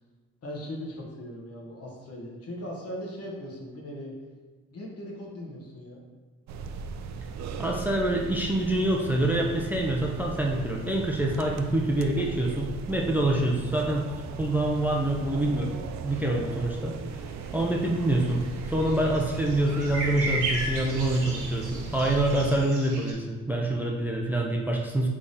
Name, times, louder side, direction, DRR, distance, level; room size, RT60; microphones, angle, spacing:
voice 1, 0.4-4.1 4.7-6.0, equal, 50° left, -1 dB, 1.2 m, -39 dB
sound 1, 6.5-22.6, right 5 dB, 65° right, 0.4 m, -37 dB
voice 2, 7.6-14.1 14.4-16.9 17.5-25.1, right 1 dB, 5° right, 0 dB, 0.5 m, -26 dB
sound 2, 17.1-23.1, right 2 dB, 85° right, 1.1 m, -36 dB
3.5 x 3.5 x 4.0 m, 1.4 s
cardioid pair, 90°, 30 cm